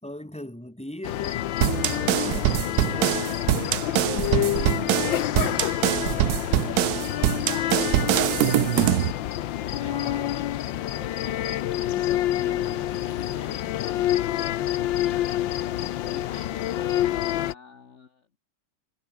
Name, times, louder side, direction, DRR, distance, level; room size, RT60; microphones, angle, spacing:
voice 1, 0.0-3.2 4.3-4.4 9.8-10.3 12.3-12.9, left 1 dB, 5° left, 3.7 m, -40 dB
sound 1, 1.0-17.5, left 13 dB, 90° left, 1.6 m, -27 dB
sound 2, 1.6-9.1, right 15 dB, 70° right, 1.0 m, -24 dB
voice 2, 3.3-5.7 7.1-10.6 11.0-13.7 16.1-18.3, left 5 dB, 40° left, 1.7 m, -45 dB
omnidirectional pair, 2.0 m